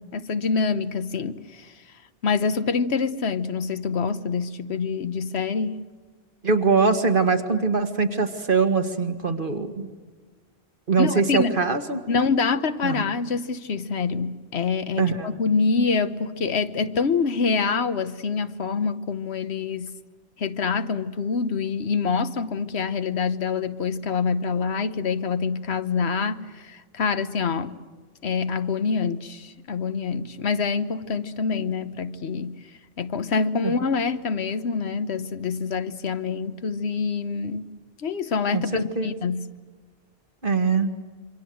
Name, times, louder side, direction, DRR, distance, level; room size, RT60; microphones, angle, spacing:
voice 1, 0.1-1.7 2.2-5.8 11.0-11.6 12.1-19.9 20.4-27.8 28.2-32.6 33.0-37.7 38.0-39.5, left 5 dB, 90° left, 1.4 m, -26 dB
voice 2, 6.4-9.9 10.9-12.0 12.8-13.0 15.0-15.4 33.6-33.7 38.5-39.1 40.4-40.9, right 4 dB, 55° right, 1.9 m, -22 dB
27.5 x 24.5 x 7.8 m
omnidirectional pair, 1.1 m